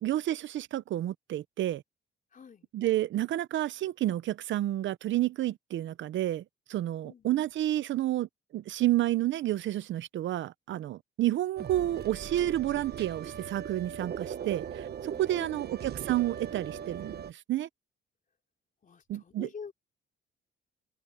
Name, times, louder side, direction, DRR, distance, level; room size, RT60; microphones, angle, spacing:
voice 1, 0.0-1.8 2.7-6.4 6.7-8.3 8.5-17.7 19.1-19.5, right 14 dB, 70° right, 0.8 m, -30 dB
voice 2, 2.3-2.7 7.0-7.5 15.1-15.7 18.8-19.7, left 6 dB, 40° left, 4.0 m, -47 dB
sound 1, 11.6-17.3, right 8 dB, 55° right, 1.2 m, -39 dB
cardioid pair, 90°, 20 cm